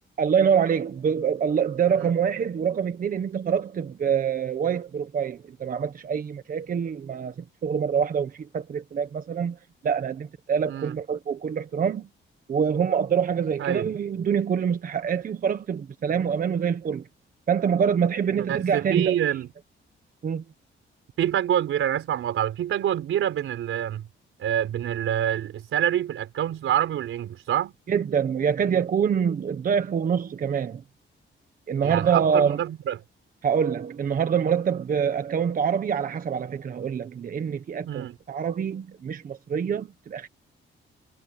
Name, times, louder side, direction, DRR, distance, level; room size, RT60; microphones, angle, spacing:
voice 1, 0.2-7.3 7.6-9.6 9.8-12.1 12.5-17.0 17.5-19.2 20.2-20.4 27.9-30.8 31.7-32.6 33.4-40.3, right 7 dB, 45° right, 1.2 m, -25 dB
voice 2, 18.3-19.5 21.2-24.1 24.4-27.7 31.8-33.0 37.8-38.2, right 10 dB, 85° right, 4.3 m, -26 dB
wide cardioid pair, 160°, 21 cm